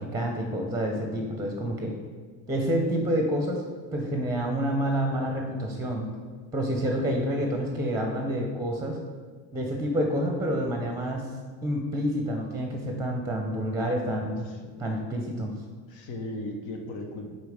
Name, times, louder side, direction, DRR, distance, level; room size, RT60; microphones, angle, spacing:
voice 1, 0.0-1.9 2.5-3.6 3.9-6.1 6.5-9.0 9.5-11.3 11.6-14.4 14.8-15.5, equal, 5° right, 2 dB, 0.7 m, -28 dB
voice 2, 14.1-14.7 15.9-17.3, left 1 dB, 65° left, 4 dB, 1.1 m, -37 dB
4.9 x 4.2 x 4.9 m, 1.5 s
supercardioid pair, 80°, 48 cm